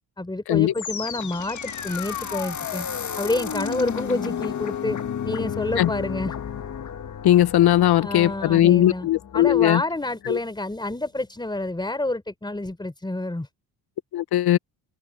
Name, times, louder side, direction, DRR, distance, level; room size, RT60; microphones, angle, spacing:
voice 1, 0.2-2.9 3.2-5.0 5.2-6.3 8.0-9.1 9.3-13.5, left 2 dB, 10° left, 4.3 m, -28 dB
sound 1, 0.7-9.9, left 8 dB, 45° left, 1.5 m, -32 dB
voice 2, 7.2-9.8 10.3-10.4 14.1-14.6, left 13 dB, 65° left, 0.8 m, -18 dB
cardioid pair, 105°, 42 cm